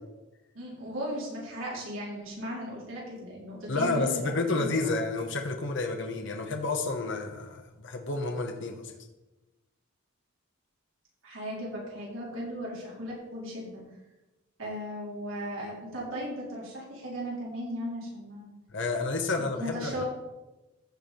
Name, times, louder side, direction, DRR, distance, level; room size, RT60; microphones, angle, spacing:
voice 1, 0.5-4.7 11.2-13.8 14.6-18.5 19.4-20.0, equal, 70° right, -5 dB, 4.2 m, -37 dB
voice 2, 3.7-8.8 18.7-20.0, left 3 dB, 60° left, 4 dB, 1.2 m, -30 dB
14.5 x 4.9 x 5.3 m, 1.1 s
head